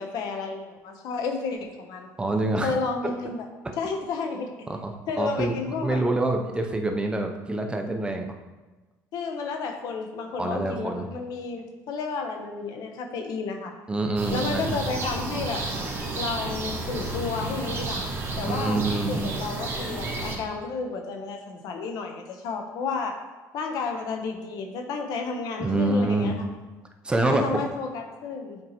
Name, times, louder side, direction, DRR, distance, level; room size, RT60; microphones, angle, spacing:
voice 1, 0.0-2.1 2.6-3.5 3.8-4.5 5.1-6.0 9.1-13.7 14.3-15.7 16.2-18.0 18.4-23.2 23.5-26.5 27.2-28.6, left 4 dB, 70° left, 4 dB, 0.9 m, -31 dB
voice 2, 2.2-2.8 4.7-5.5 5.8-8.4 10.4-11.1 13.9-14.8 18.5-19.3 25.6-26.4 27.0-27.4, right 2 dB, 15° right, 4 dB, 0.6 m, -26 dB
sound 1, 14.2-20.4, right 2 dB, 35° right, 1.9 m, -31 dB
7.5 x 4.5 x 3.0 m, 1.2 s
cardioid pair, 115°, 7 cm